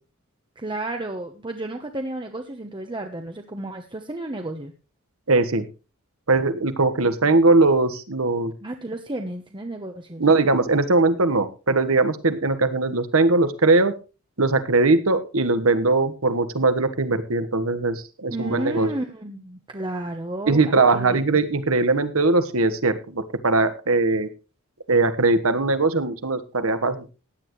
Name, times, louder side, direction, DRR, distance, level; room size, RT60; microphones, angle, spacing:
voice 1, 0.6-4.7 8.6-10.2 18.3-21.2, right 1 dB, 25° right, 4 dB, 1.0 m, -32 dB
voice 2, 5.3-5.6 6.3-8.5 10.2-13.9 14.4-18.9 20.5-24.3 24.9-27.1, right 3 dB, 80° right, 12 dB, 1.4 m, -20 dB
16.0 x 10.5 x 3.2 m, 0.31 s
head